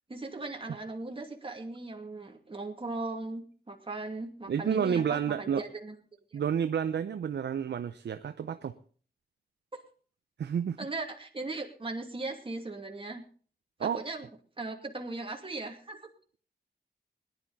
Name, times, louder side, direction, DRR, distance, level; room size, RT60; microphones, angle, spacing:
voice 1, 0.1-5.9 6.3-6.4 9.7-9.8 10.8-13.2 13.8-14.3 14.6-16.1, right 3 dB, 30° right, 2.6 m, -38 dB
voice 2, 4.5-5.6 6.3-8.7 10.4-10.8 13.8-14.0, right 8 dB, 80° right, 0.7 m, -30 dB
18.5 x 11.0 x 4.1 m
cardioid pair, 55°, 18 cm